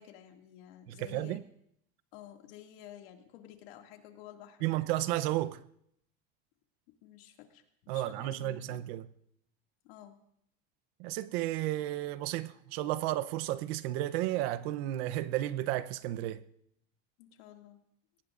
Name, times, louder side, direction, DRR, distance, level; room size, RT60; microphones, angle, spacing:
voice 1, 0.0-1.4 2.1-4.7 7.0-7.6 7.9-8.8 9.8-10.2 17.2-17.8, left 11 dB, 80° left, 2.4 m, -51 dB
voice 2, 0.9-1.4 4.6-5.6 7.9-9.0 11.0-16.4, right 15 dB, 70° right, 0.8 m, -33 dB
22.5 x 18.5 x 2.6 m
supercardioid pair, 135°, 31 cm